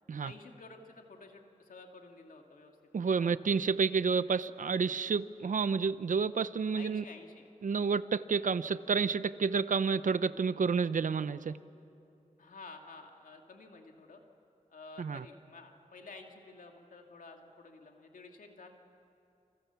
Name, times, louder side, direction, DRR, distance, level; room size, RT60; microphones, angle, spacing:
voice 1, 0.2-2.8 3.2-3.3 6.8-7.5 12.4-14.2 14.7-18.7, left 3 dB, 90° left, 3 dB, 2.5 m, -51 dB
voice 2, 2.9-7.0 7.6-11.5 15.0-15.2, right 5 dB, 75° right, 14 dB, 0.8 m, -30 dB
29.0 x 29.0 x 7.1 m, 2.8 s
wide cardioid pair, 95°, 14 cm